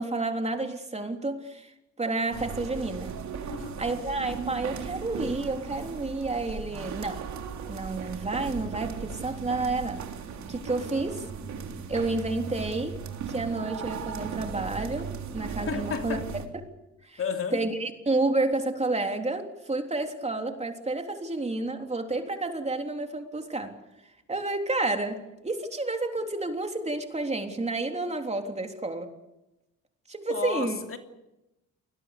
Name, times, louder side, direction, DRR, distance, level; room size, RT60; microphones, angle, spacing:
voice 1, 0.0-3.1 3.8-7.3 7.7-10.0 10.5-11.2 11.9-16.2 17.0-17.2 17.5-23.8 24.3-29.1 30.1-30.8, right 2 dB, 20° right, 3.5 m, -30 dB
sound 1, 2.3-16.5, right 6 dB, 70° right, 3.4 m, -37 dB
voice 2, 3.5-3.8 15.7-16.2 17.2-17.7 30.3-31.0, left 6 dB, 45° left, 2.9 m, -32 dB
28.0 x 21.0 x 6.8 m
cardioid pair, 90°, 30 cm